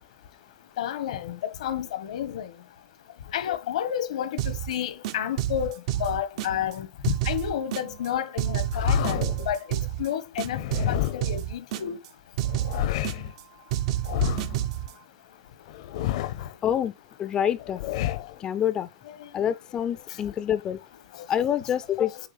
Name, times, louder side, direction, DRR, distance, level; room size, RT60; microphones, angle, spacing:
voice 1, 0.8-1.4 1.6-2.5 3.3-5.7 6.0-6.9 7.2-9.2 9.5-9.6 10.0-10.6 10.9-12.0, left 10 dB, 85° left, 1.2 m, -30 dB
sound 1, 4.4-4.7 5.0-6.7 7.0-8.1 8.4-10.1 10.4-12.1 12.4-13.4 13.7-14.9, right 13 dB, 55° right, 0.6 m, -29 dB
sound 2, 8.7-9.5 10.5-11.4 12.4-13.3 14.0-14.6 15.7-16.5 17.6-18.4, left 13 dB, 65° left, 0.7 m, -29 dB
voice 2, 16.6-16.9 17.2-17.8 18.4-18.9 19.3-20.8 21.3-22.2, left 9 dB, 20° left, 0.4 m, -26 dB
8.4 x 4.8 x 3.2 m
supercardioid pair, 160°, 4 cm